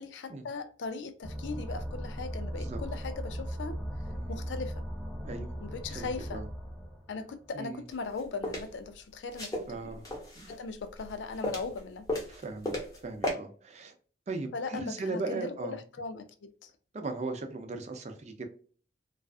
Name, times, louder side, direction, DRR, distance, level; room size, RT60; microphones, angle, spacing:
voice 1, 0.0-3.8 4.3-4.8 5.6-6.4 7.1-10.0 10.5-12.1 14.5-16.7, left 4 dB, 90° left, 0.4 m, -39 dB
sound 1, 1.2-7.8, equal, 5° right, 1.0 m, -38 dB
voice 2, 4.1-4.5 5.2-5.6 5.9-6.5 7.5-7.8 9.7-10.0 10.4-10.5 12.3-12.8 13.0-13.9 14.3-15.8 16.9-18.5, right 3 dB, 40° right, 0.4 m, -38 dB
sound 2, 7.9-8.7 9.3-10.6 11.0-11.8 12.1-13.0 13.2-13.3, left 1 dB, 20° left, 0.7 m, -34 dB
2.4 x 2.3 x 2.3 m
head